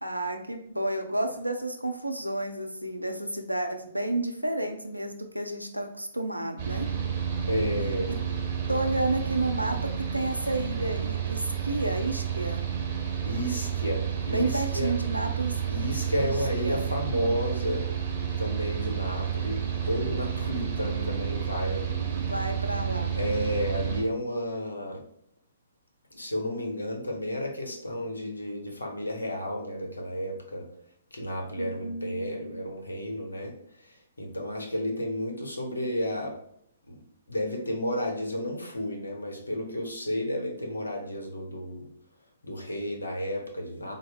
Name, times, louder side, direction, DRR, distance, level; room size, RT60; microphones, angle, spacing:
voice 1, 0.0-6.9 8.7-12.7 14.3-15.6 16.2-16.3 16.6-16.8 22.2-23.1 31.6-32.5, right 2 dB, 90° right, 4 dB, 0.5 m, -31 dB
Mechanical fan, 6.6-24.0, right 8 dB, 35° right, 0.8 m, -30 dB
voice 2, 7.5-8.1 13.0-14.9 15.7-17.9 18.4-19.6 19.9-22.2 23.1-25.0 26.1-30.7 31.1-36.4 36.9-37.0 37.3-41.9 42.4-43.9, equal, 75° left, 2 dB, 0.9 m, -32 dB
4.1 x 2.0 x 3.4 m, 0.70 s
figure-of-eight pair, 120°, 0 cm